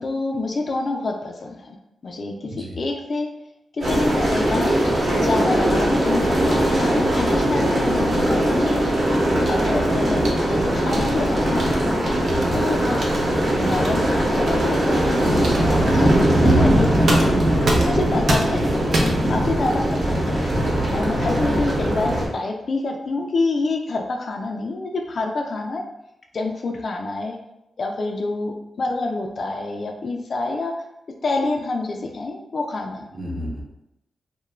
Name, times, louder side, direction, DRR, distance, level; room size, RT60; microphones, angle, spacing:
voice 1, 0.0-1.8 2.0-3.3 3.7-4.7 5.2-8.7 9.5-12.1 12.5-13.1 13.5-17.3 17.8-20.4 20.9-25.8 26.3-27.4 27.8-30.7 31.2-33.0, left 3 dB, 50° left, 2 dB, 0.3 m, -27 dB
voice 2, 2.4-2.8 6.6-6.8 9.1-9.4 12.3-12.5 16.0-16.1 17.5-17.8 20.6-20.9 33.1-33.6, left 1 dB, 15° right, -2 dB, 0.7 m, -31 dB
sound 1, 3.8-22.3, right 1 dB, 45° right, 0.9 m, -20 dB
sound 2, 9.4-9.8 10.2-10.4 10.9-11.2 11.6-11.8 12.3-12.5 13.0-13.2 13.7-13.9 14.5-14.6 15.4-15.7 17.1-18.0 18.3-18.6 18.9-19.3, right 1 dB, 65° right, 0.5 m, -26 dB
2.3 x 2.1 x 3.1 m, 0.87 s
cardioid pair, 95°, 0 cm